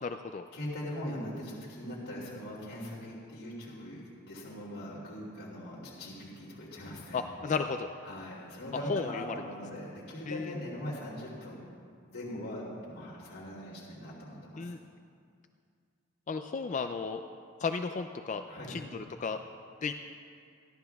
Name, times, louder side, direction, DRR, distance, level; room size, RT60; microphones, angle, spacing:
voice 1, 0.0-0.5 7.1-7.9 8.9-9.2 10.3-10.5 14.6-14.8 16.3-17.2 17.6-19.4 19.8-19.9, left 5 dB, 35° left, 7 dB, 0.3 m, -34 dB
voice 2, 0.5-7.2 8.0-11.6 12.1-14.7 18.5-18.8, left 1 dB, 85° left, -7 dB, 2.9 m, -41 dB
28.5 x 12.0 x 2.3 m, 2.3 s
head